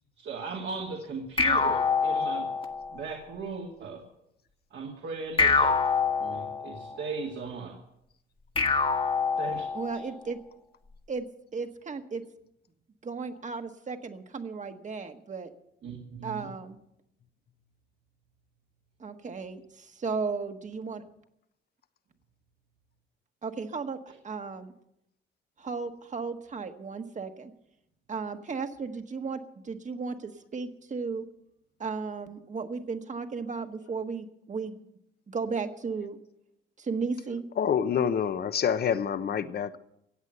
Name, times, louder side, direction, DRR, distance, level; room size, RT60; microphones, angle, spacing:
voice 1, 0.2-2.5 2.9-4.0 4.7-5.7 6.2-7.7 9.4-9.6 15.8-16.5, right 4 dB, 65° right, 0 dB, 2.5 m, -37 dB
sound 1, 1.4-3.0 5.4-7.0 8.6-10.1, left 5 dB, 25° left, 1.4 m, -26 dB
voice 2, 9.7-10.4 11.1-11.3 11.5-12.2 13.0-15.5 16.2-16.8 19.0-21.0 23.4-24.0 24.2-24.7 25.6-27.5 28.1-31.2 31.8-34.8 35.3-36.2 36.8-37.4, right 4 dB, 40° right, 7 dB, 1.6 m, -35 dB
voice 3, 37.5-39.8, left 8 dB, 55° left, 12 dB, 1.0 m, -27 dB
16.0 x 8.2 x 8.0 m, 0.81 s
cardioid pair, 90°, 20 cm